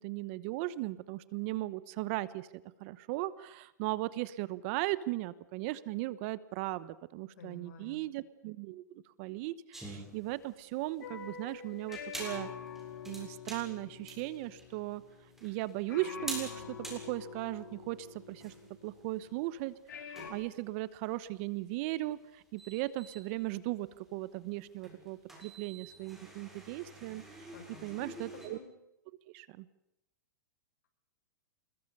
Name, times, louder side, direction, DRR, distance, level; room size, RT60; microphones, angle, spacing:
voice 1, 0.0-2.5 2.8-12.5 13.1-15.0 15.4-16.6 16.9-18.5 18.8-27.5 27.8-28.6 29.3-29.7, right 17 dB, 45° right, 17 dB, 1.1 m, -37 dB
voice 2, 7.4-8.0 27.5-28.7, left 4 dB, 65° left, 6 dB, 6.1 m, -52 dB
sound 1, 9.7-28.5, right 1 dB, 5° right, 7.2 m, -49 dB
sound 2, 11.0-15.6 15.9-19.5 19.9-20.3, left 6 dB, 90° left, 5.2 m, -46 dB
26.5 x 21.5 x 6.8 m, 0.85 s
hypercardioid pair, 145°, 10 cm